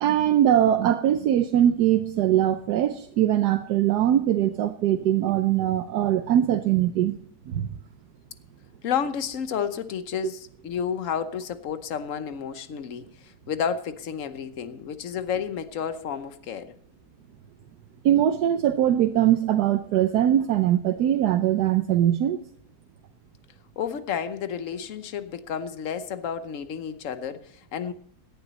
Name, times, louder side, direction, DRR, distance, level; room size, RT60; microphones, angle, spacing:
voice 1, 0.0-7.1 7.5-7.7 18.0-22.4, right 11 dB, 80° right, 1.3 m, -21 dB
voice 2, 8.8-16.8 23.8-27.9, left 7 dB, 60° left, 1.2 m, -31 dB
17.5 x 11.0 x 4.2 m
omnidirectional pair, 1.7 m